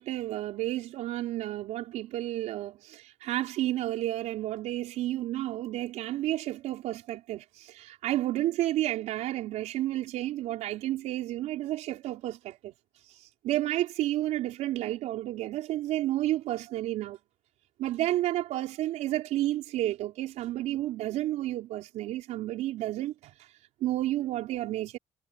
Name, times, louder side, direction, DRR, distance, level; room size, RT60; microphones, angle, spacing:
voice 1, 0.0-12.7 13.1-17.2 17.8-23.5 23.8-25.0, right 14 dB, 75° right, 4.7 m, -31 dB
cardioid pair, 140°, 12 cm